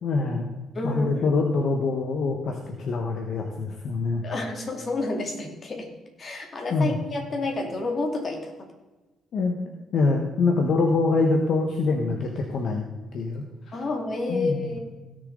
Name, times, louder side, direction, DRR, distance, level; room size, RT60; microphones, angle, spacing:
voice 1, 0.0-0.5 0.8-4.2 6.7-7.0 9.3-9.6 9.9-12.9 13.1-13.8 14.3-14.8, left 3 dB, 65° left, 2 dB, 1.3 m, -25 dB
voice 2, 0.7-1.3 4.2-5.9 6.2-8.5 13.7-14.8, left 2 dB, 40° left, 2 dB, 2.6 m, -29 dB
17.0 x 6.9 x 4.0 m, 1.1 s
cardioid pair, 95°, 0 cm